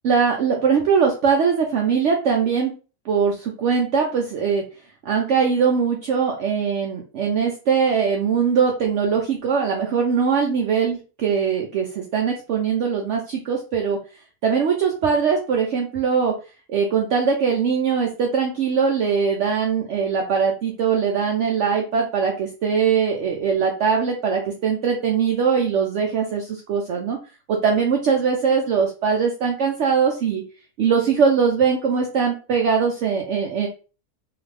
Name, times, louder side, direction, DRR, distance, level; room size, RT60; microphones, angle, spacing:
voice 1, 0.0-2.7 3.1-4.6 5.0-14.0 14.4-16.3 16.7-27.2 27.5-30.4 30.8-33.7, right 6 dB, 80° right, 1 dB, 0.6 m, -21 dB
2.6 x 2.4 x 3.2 m, 0.34 s
omnidirectional pair, 1.8 m